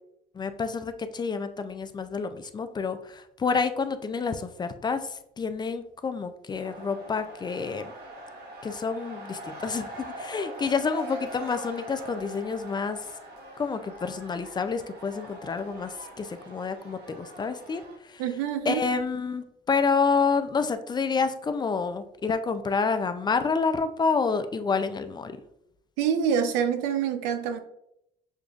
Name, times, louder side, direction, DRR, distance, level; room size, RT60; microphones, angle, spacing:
voice 1, 0.3-7.9 8.6-13.0 13.6-17.8 18.1-18.2 18.7-25.4, left 5 dB, 25° left, 9 dB, 0.4 m, -28 dB
sound 1, 6.6-18.0, right 1 dB, 65° right, 1.3 m, -43 dB
voice 2, 18.2-18.8 26.0-27.6, right 8 dB, 90° right, 8 dB, 0.6 m, -26 dB
6.4 x 2.3 x 2.3 m, 0.77 s
supercardioid pair, 95°, 18 cm